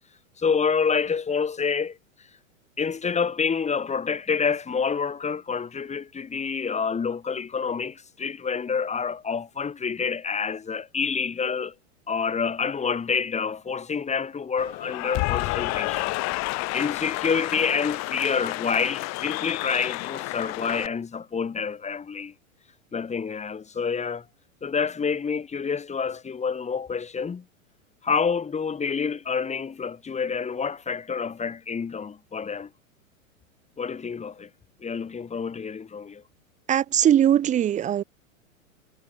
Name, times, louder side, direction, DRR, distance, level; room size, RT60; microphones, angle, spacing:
voice 1, 0.4-2.0 2.8-11.7 12.1-16.2 16.7-22.3 22.9-24.2 24.6-27.4 28.0-32.7 33.8-34.5 34.8-36.2, left 6 dB, 15° left, 5.9 m, -28 dB
Cheering / Applause, 14.6-20.9, left 24 dB, 40° left, 2.3 m, -30 dB
voice 2, 36.7-38.0, right 10 dB, 20° right, 0.7 m, -20 dB
figure-of-eight pair, 100°, 41 cm